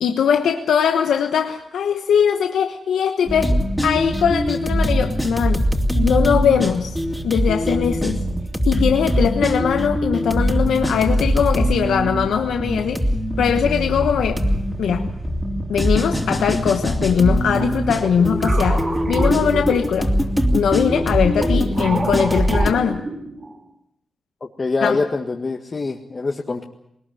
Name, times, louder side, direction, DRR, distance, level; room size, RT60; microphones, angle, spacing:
voice 1, 0.0-5.7 6.0-7.0 7.2-8.3 8.6-14.4 14.8-15.1 15.7-20.1 20.5-23.0 24.8-25.0, left 7 dB, 90° left, 5 dB, 1.1 m, -20 dB
sound 1, 3.3-22.7, equal, 5° right, 3.1 m, -22 dB
sound 2, 17.5-20.3 20.9-23.6, right 2 dB, 40° right, 4.6 m, -29 dB
voice 2, 24.6-26.6, left 3 dB, 45° left, 2 dB, 1.8 m, -24 dB
20.0 x 19.5 x 9.2 m, 0.77 s
cardioid pair, 55°, 0 cm